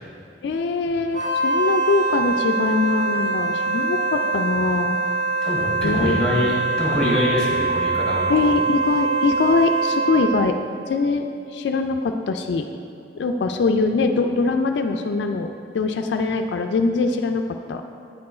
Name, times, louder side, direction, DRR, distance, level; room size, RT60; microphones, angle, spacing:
voice 1, 0.4-5.0 5.8-6.5 8.3-10.5 10.9-12.7 13.2-17.4 17.7-17.8, left 3 dB, 70° left, 5 dB, 0.3 m, -22 dB
Wind instrument woodwind instrument, 1.1-10.4, right 3 dB, 70° right, 1.3 m, -23 dB
voice 2, 5.4-8.5, left 1 dB, 5° left, -4 dB, 1.4 m, -24 dB
8.7 x 4.4 x 4.2 m, 2.7 s
head